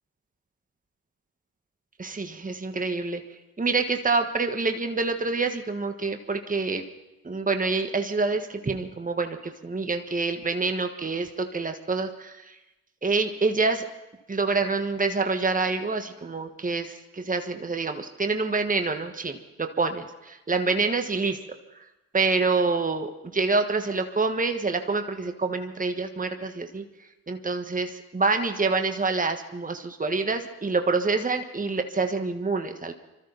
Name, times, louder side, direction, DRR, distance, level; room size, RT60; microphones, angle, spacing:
voice 1, 2.0-3.2 3.6-6.8 7.2-12.5 13.0-13.9 14.3-21.4 22.1-26.8 27.3-32.9, right 3 dB, 20° right, 6 dB, 1.5 m, -27 dB
25.0 x 13.5 x 4.1 m, 0.99 s
hypercardioid pair, 45°, 37 cm